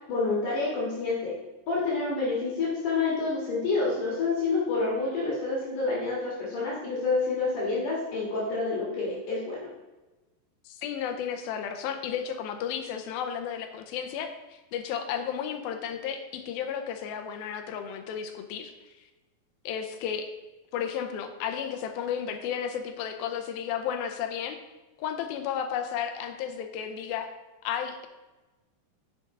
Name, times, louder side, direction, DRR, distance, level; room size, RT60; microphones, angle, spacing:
voice 1, 0.1-1.4 1.7-9.7, left 3 dB, 65° left, -5 dB, 3.1 m, -28 dB
voice 2, 10.7-18.7 19.7-20.3 20.7-24.6 25.0-27.3 27.6-28.1, left 8 dB, 85° left, 7 dB, 2.6 m, -33 dB
10.0 x 6.7 x 3.7 m, 1.1 s
omnidirectional pair, 4.2 m